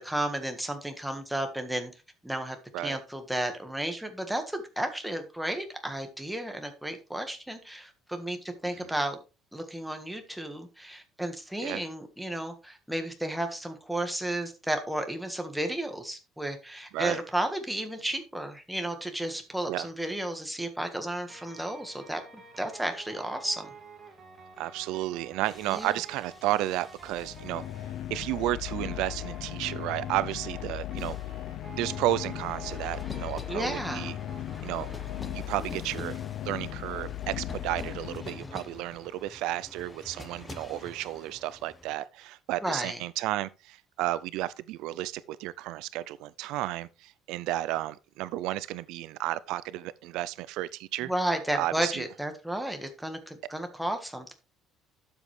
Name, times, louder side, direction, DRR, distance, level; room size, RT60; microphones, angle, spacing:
voice 1, 0.0-1.9 2.2-2.6 2.8-9.2 9.5-23.7 25.7-25.9 33.5-34.1 42.6-43.0 51.1-54.3, right 1 dB, 5° right, 1.6 m, -33 dB
sound 1, 21.3-36.0, right 4 dB, 25° right, 2.3 m, -50 dB
voice 2, 24.6-27.6 28.1-31.2 31.8-34.2 34.6-34.9 35.3-51.1 51.5-52.0, right 15 dB, 80° right, 0.4 m, -32 dB
sound 2, 25.0-41.9, left 2 dB, 15° left, 1.0 m, -47 dB
sound 3, 27.0-38.8, left 13 dB, 55° left, 0.4 m, -37 dB
12.0 x 7.2 x 3.3 m
cardioid pair, 160°, 0 cm